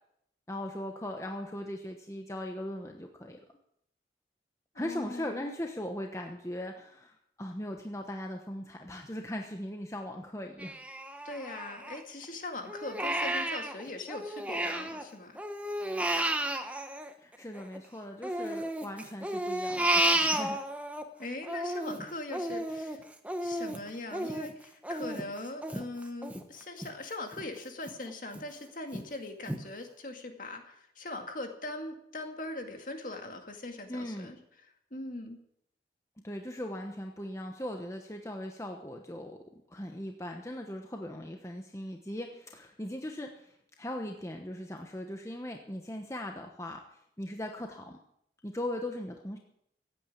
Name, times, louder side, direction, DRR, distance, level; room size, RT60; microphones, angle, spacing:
voice 1, 0.5-3.4 4.7-10.8 17.2-20.6 33.9-34.3 36.2-39.4 39.7-46.8 47.2-48.0 48.4-49.4, left 1 dB, 15° left, 3 dB, 1.1 m, -39 dB
voice 2, 4.7-5.5 11.2-15.4 21.2-23.0 23.4-34.4 34.9-35.4, left 2 dB, 50° left, 4 dB, 2.2 m, -41 dB
Crying sobbing, 10.6-12.3 12.7-15.0 15.4-17.8 18.2-21.0 21.4-26.9 27.3-27.4 27.9-28.4 28.9-29.0 29.5-29.6, right 1 dB, 10° right, 1.1 m, -32 dB
15.5 x 9.0 x 8.7 m, 0.73 s
head